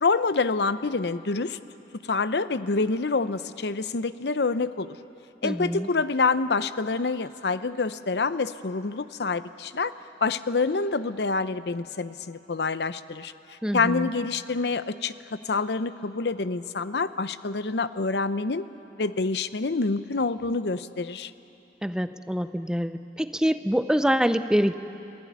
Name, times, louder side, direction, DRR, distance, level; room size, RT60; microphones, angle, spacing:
voice 1, 0.0-1.6 2.0-5.0 5.4-9.9 10.2-13.3 13.7-18.7 19.0-21.3, left 4 dB, 70° left, 14 dB, 0.7 m, -27 dB
voice 2, 5.4-5.9 13.6-14.1 21.8-24.7, equal, 5° right, 11 dB, 0.6 m, -25 dB
27.5 x 17.5 x 9.4 m, 3.0 s
head